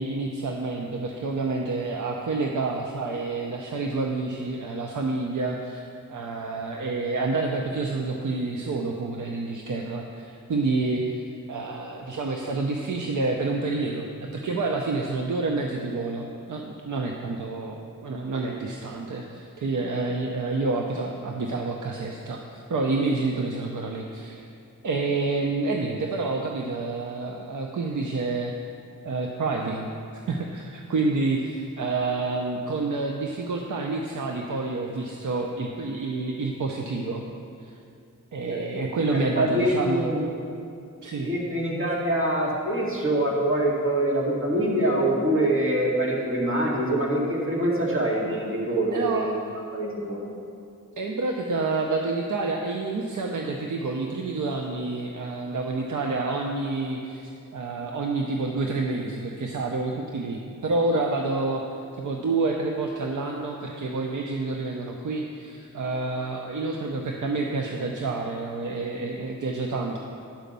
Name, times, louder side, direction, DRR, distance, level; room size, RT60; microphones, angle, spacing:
voice 1, 0.0-24.4 24.8-28.5 29.0-29.9 30.3-37.2 37.6-37.7 38.3-40.2 41.0-41.3 48.9-49.4 51.0-70.0, right 3 dB, 65° right, 1 dB, 0.7 m, -28 dB
voice 2, 38.5-38.8 39.1-40.2 41.2-49.4 49.7-50.2, right 1 dB, 40° right, -5 dB, 2.2 m, -25 dB
10.5 x 5.1 x 6.7 m, 2.5 s
wide cardioid pair, 130°, 32 cm